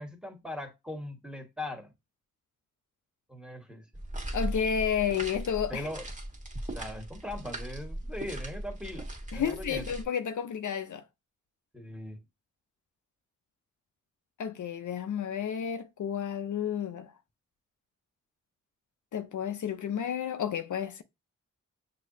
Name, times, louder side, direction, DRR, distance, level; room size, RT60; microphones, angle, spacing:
voice 1, 0.0-1.9 3.3-3.9 5.7-6.1 6.7-9.9 11.7-12.2, left 1 dB, 5° right, 1.6 m, -40 dB
sound 1, 3.9-10.0, right 1 dB, 25° right, 1.5 m, -38 dB
voice 2, 4.3-5.9 9.3-11.0 14.4-17.1 19.1-21.0, left 8 dB, 70° left, 0.6 m, -31 dB
6.3 x 2.9 x 2.7 m
cardioid pair, 50°, 32 cm